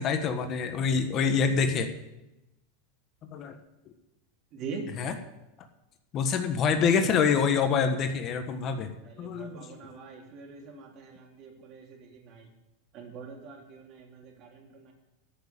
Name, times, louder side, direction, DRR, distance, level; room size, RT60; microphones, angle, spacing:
voice 1, 0.0-1.9 3.2-3.6 5.0-5.1 6.1-9.9, left 6 dB, 40° left, 7 dB, 1.4 m, -26 dB
voice 2, 4.5-4.9 9.0-12.5 12.9-14.9, right 5 dB, 45° right, 1 dB, 3.5 m, -43 dB
14.0 x 6.8 x 8.9 m, 0.97 s
supercardioid pair, 125°, 0 cm